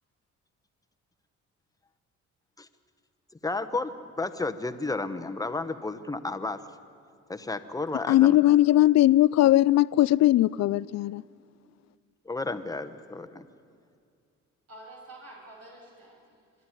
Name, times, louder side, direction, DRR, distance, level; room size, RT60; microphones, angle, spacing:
voice 1, 3.4-6.6 7.3-8.5 12.2-13.4, left 3 dB, 10° left, 10 dB, 1.1 m, -32 dB
voice 2, 8.1-11.2, left 14 dB, 60° left, 22 dB, 0.4 m, -20 dB
voice 3, 14.7-16.6, right 1 dB, 55° right, -2 dB, 7.4 m, -48 dB
25.5 x 11.0 x 9.8 m, 2.3 s
cardioid pair, 90°, 30 cm